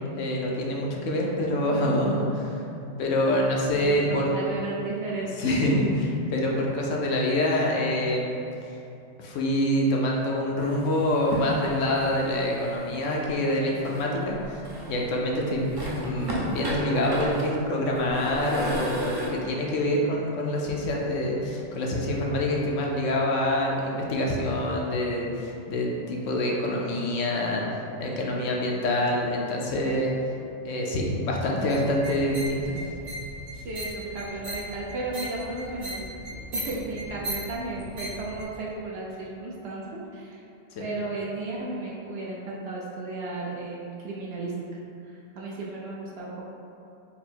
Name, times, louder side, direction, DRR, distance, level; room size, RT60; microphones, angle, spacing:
voice 1, 0.2-2.6 3.0-4.2 5.4-8.8 9.2-14.6 14.9-27.6 28.0-30.4 30.6-32.8 40.7-40.9, left 1 dB, 75° left, -2 dB, 0.9 m, -26 dB
voice 2, 3.7-5.9 33.5-40.4 40.8-46.4, right 2 dB, 65° right, -4 dB, 0.7 m, -34 dB
sound 1, 10.6-13.2 13.8-15.1 15.5-19.3, right 1 dB, 40° right, 0.3 m, -34 dB
sound 2, 31.7-38.4, equal, 85° right, 1.7 m, -37 dB
4.1 x 2.0 x 4.3 m, 2.7 s
omnidirectional pair, 1.3 m